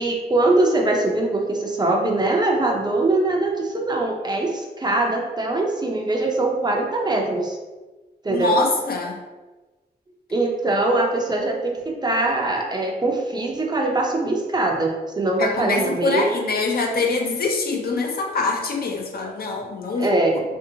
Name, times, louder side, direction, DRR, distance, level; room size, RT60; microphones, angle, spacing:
voice 1, 0.0-7.6 8.2-8.6 10.3-16.3 20.0-20.4, right 2 dB, 25° right, 0 dB, 0.5 m, -22 dB
voice 2, 8.3-9.2 15.4-20.4, left 3 dB, 60° left, 2 dB, 0.5 m, -24 dB
3.4 x 2.6 x 2.7 m, 1.2 s
wide cardioid pair, 95°, 17 cm